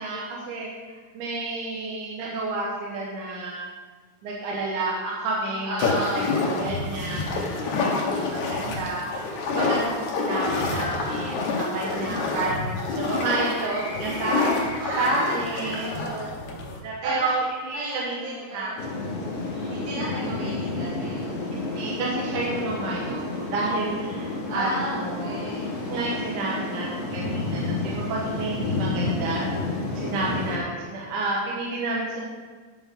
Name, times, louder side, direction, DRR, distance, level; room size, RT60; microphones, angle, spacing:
voice 1, 0.0-3.7 4.2-9.0 9.5-11.4 11.7-17.8 18.0-18.7 19.5-19.7 21.5-25.3 25.9-27.8 28.1-29.5 29.9-32.2, right 2 dB, 85° right, -3 dB, 2.6 m, -30 dB
voice 2, 5.6-6.3 10.6-11.1 14.8-16.3 17.0-17.3 17.7-18.8 19.7-21.5 24.5-25.7, right 1 dB, 60° right, -9 dB, 2.6 m, -33 dB
sound 1, 5.8-16.8, left 3 dB, 75° left, 2.4 m, -28 dB
sound 2, 18.8-30.6, left 3 dB, 60° left, 2.7 m, -30 dB
10.5 x 6.6 x 3.6 m, 1.4 s
omnidirectional pair, 3.4 m